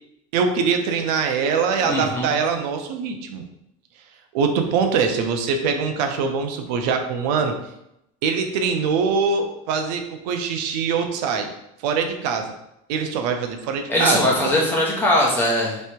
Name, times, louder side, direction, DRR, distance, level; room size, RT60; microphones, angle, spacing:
voice 1, 0.3-3.4 4.3-7.6 8.2-11.5 11.8-12.5 12.9-14.6, right 5 dB, 85° right, 5 dB, 0.7 m, -23 dB
voice 2, 1.8-2.3 13.9-15.8, left 1 dB, 10° left, -4 dB, 1.1 m, -20 dB
3.3 x 3.2 x 4.5 m, 0.81 s
cardioid pair, 150°, 20 cm